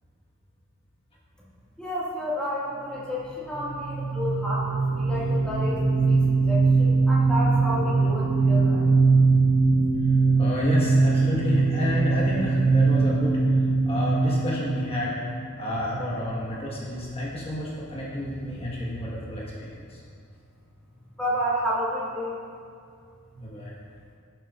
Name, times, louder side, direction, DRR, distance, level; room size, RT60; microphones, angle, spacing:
voice 1, 1.8-5.8 6.1-9.0 21.2-22.4, equal, 5° left, -8 dB, 1.9 m, -30 dB
sound 1, 3.6-16.0, right 3 dB, 60° right, 0.6 m, -22 dB
voice 2, 10.4-13.4 13.9-15.2 15.6-20.0 23.3-23.7, left 1 dB, 30° left, -6 dB, 1.4 m, -30 dB
16.0 x 7.7 x 2.5 m, 2.3 s
head